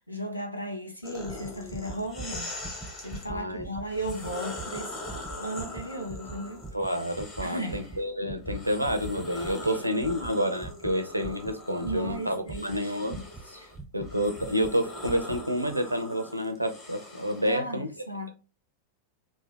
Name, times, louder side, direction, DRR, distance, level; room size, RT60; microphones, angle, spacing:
voice 1, 0.1-2.5 3.0-5.0 5.4-6.6 7.4-8.0 9.6-9.8 11.8-13.7 17.5-18.3, right 1 dB, 85° left, 0.6 m, -36 dB
sound 1, 1.0-3.3 3.9-8.0 8.4-17.6, left 2 dB, 30° left, 1.0 m, -42 dB
sound 2, 1.2-14.1 14.4-14.8 15.0-15.4 15.7-15.8, right 3 dB, 5° right, 0.4 m, -43 dB
voice 2, 3.3-3.7 6.7-13.2 13.9-18.0, equal, 90° right, 0.5 m, -29 dB
2.7 x 2.0 x 3.3 m
figure-of-eight pair, 90°, 0 cm